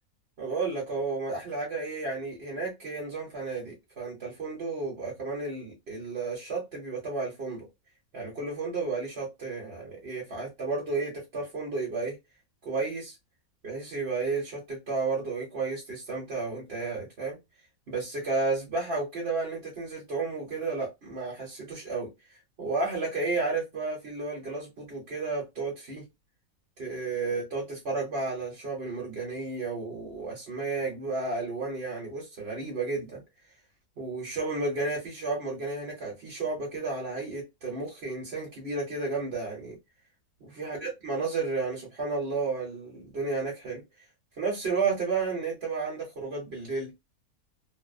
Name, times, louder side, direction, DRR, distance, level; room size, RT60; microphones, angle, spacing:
voice 1, 0.4-7.7 8.1-12.2 12.6-13.1 13.6-17.4 17.9-22.1 22.6-26.0 26.8-33.2 34.0-39.8 40.4-43.8 44.4-46.9, right 3 dB, 50° right, 1.2 m, -32 dB
2.6 x 2.1 x 2.4 m
omnidirectional pair, 1.6 m